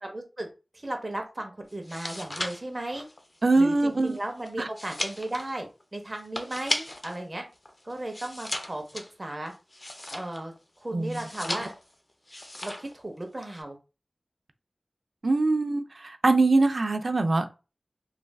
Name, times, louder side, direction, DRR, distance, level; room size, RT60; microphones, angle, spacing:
voice 1, 0.0-0.5 0.7-3.0 3.6-7.4 7.8-9.5 10.1-10.5 10.8-11.7 12.6-13.8, right 1 dB, 35° right, 0.7 m, -35 dB
sound 1, 1.7-7.2 7.5-10.6 11.0-11.9 12.3-13.0 13.2-13.6, left 1 dB, 35° left, 0.5 m, -36 dB
voice 2, 3.4-4.2 4.6-4.7 10.9-11.2 15.2-17.5, right 3 dB, 65° right, 0.4 m, -23 dB
3.2 x 2.4 x 2.3 m
wide cardioid pair, 45°, 0 cm